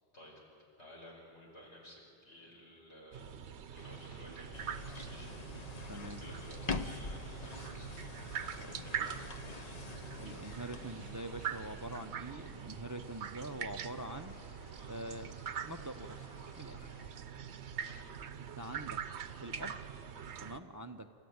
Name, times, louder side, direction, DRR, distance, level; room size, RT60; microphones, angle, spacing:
voice 1, 0.8-3.4 3.7-5.6 5.9-8.3 8.6-9.8 17.7-18.3, left 1 dB, 80° left, -2 dB, 5.6 m, -55 dB
sound 1, 3.1-20.6, right 8 dB, 80° right, 1.1 m, -44 dB
sound 2, 3.8-17.1, left 2 dB, 60° left, 2.0 m, -58 dB
sound 3, 4.5-12.1, left 4 dB, 40° left, 0.9 m, -44 dB
voice 2, 5.9-6.2 8.6-9.1 10.2-14.3 14.8-15.3 15.6-16.3 16.6-16.9 18.4-19.0 19.4-20.0 20.4-21.1, right 1 dB, 20° right, 9 dB, 0.5 m, -45 dB
29.5 x 13.5 x 9.5 m, 2.7 s
omnidirectional pair, 1.1 m